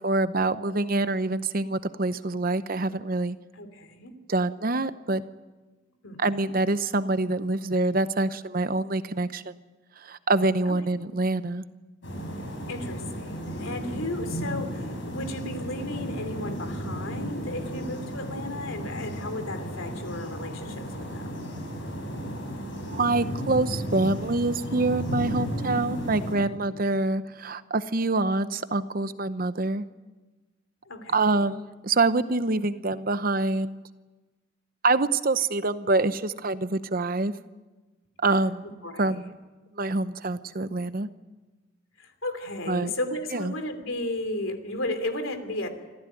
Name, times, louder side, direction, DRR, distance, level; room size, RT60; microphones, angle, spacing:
voice 1, 0.0-3.4 4.3-5.2 6.2-9.5 10.0-11.6 22.9-29.8 31.1-33.8 34.8-37.3 38.2-38.6 39.0-39.3 39.8-41.1 42.7-42.9 43.3-43.5, right 2 dB, 45° right, 13 dB, 0.8 m, -26 dB
voice 2, 3.5-4.1 6.0-6.5 10.7-10.8 11.1-11.2 12.6-21.4 26.5-26.8 30.9-31.5 38.6-39.3 42.0-45.7, left 1 dB, 85° left, 8 dB, 3.0 m, -34 dB
sound 1, 12.0-26.3, equal, 65° left, 7.3 m, -34 dB
25.5 x 15.0 x 9.2 m, 1.2 s
head